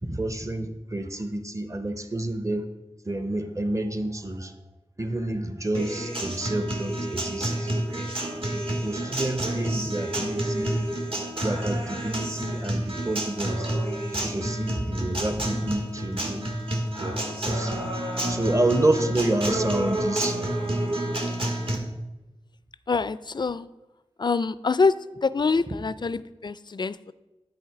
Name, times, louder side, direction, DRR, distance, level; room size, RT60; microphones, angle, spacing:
voice 1, 0.0-2.6 3.1-4.5 5.0-7.7 8.0-8.1 8.8-10.9 11.4-13.7 14.1-16.5 17.0-17.1 17.4-17.7 18.3-20.4, right 1 dB, 30° right, 8 dB, 0.8 m, -28 dB
Acoustic guitar, 5.7-21.8, right 1 dB, 55° right, 1.5 m, -29 dB
voice 2, 22.9-23.7 24.2-24.9 25.2-27.1, left 4 dB, 40° left, 16 dB, 0.3 m, -25 dB
10.5 x 4.3 x 4.7 m, 1.1 s
wide cardioid pair, 50°, 11 cm